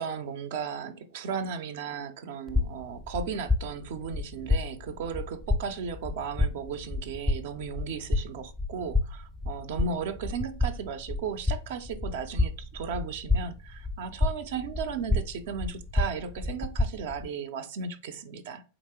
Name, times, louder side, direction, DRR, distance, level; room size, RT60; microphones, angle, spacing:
voice 1, 0.0-18.6, right 6 dB, 55° right, 0.5 m, -35 dB
sound 1, 2.5-17.3, left 2 dB, 5° left, 0.4 m, -30 dB
4.0 x 2.9 x 3.5 m
figure-of-eight pair, 90°, 0 cm